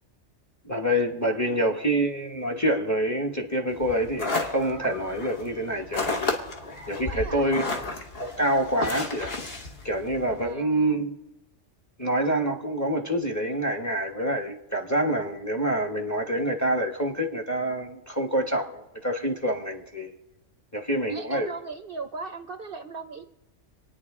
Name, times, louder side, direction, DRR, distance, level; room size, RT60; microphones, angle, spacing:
voice 1, 0.6-6.4 6.9-7.6 8.2-9.4 9.8-11.1 12.0-20.1 20.7-21.5, right 1 dB, 15° left, 1.0 m, -26 dB
voice 2, 1.3-1.7 7.0-7.5 10.4-11.1 21.1-23.3, right 4 dB, 55° right, 0.8 m, -39 dB
sound 1, 3.8-10.5, left 3 dB, 55° left, 1.5 m, -33 dB
26.5 x 9.6 x 3.6 m
omnidirectional pair, 1.2 m